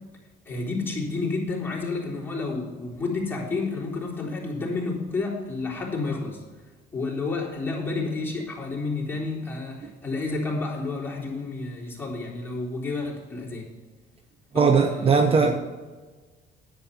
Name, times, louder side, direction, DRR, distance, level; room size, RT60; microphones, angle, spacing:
voice 1, 0.5-6.4 6.9-13.7 14.5-15.5, left 3 dB, 10° left, -4 dB, 3.8 m, -30 dB
voice 2, 14.5-15.6, right 5 dB, 35° right, 7 dB, 0.8 m, -19 dB
10.5 x 8.1 x 5.8 m, 1.4 s
cardioid pair, 110°, 17 cm